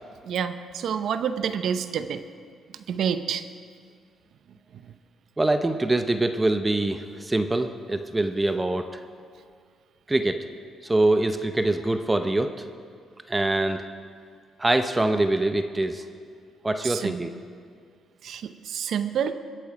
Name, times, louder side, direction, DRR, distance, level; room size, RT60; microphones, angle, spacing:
voice 1, 0.2-2.2 2.9-3.4 16.8-17.2 18.2-19.3, right 8 dB, 70° right, 10 dB, 0.7 m, -28 dB
voice 2, 5.4-9.0 10.1-10.4 10.8-12.5 13.3-13.8 14.6-16.0 16.6-17.3, right 2 dB, 15° right, 7 dB, 0.7 m, -24 dB
21.5 x 7.7 x 4.9 m, 2.1 s
cardioid pair, 90°, 0 cm